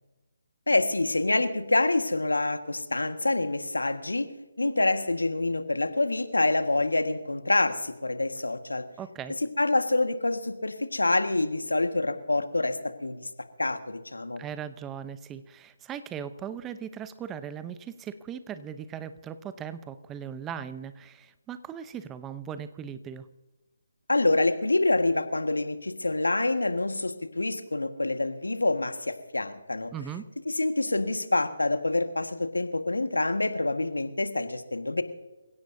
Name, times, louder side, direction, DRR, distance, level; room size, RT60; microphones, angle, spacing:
voice 1, 0.7-4.3 4.6-8.8 9.6-13.3 13.6-14.4 24.1-29.9 30.5-35.0, left 2 dB, 80° left, 8 dB, 1.6 m, -26 dB
voice 2, 9.0-9.4 14.4-23.3 29.9-30.3, right 8 dB, 15° right, 13 dB, 0.8 m, -38 dB
27.5 x 16.5 x 2.7 m, 1.1 s
figure-of-eight pair, 145°, 0 cm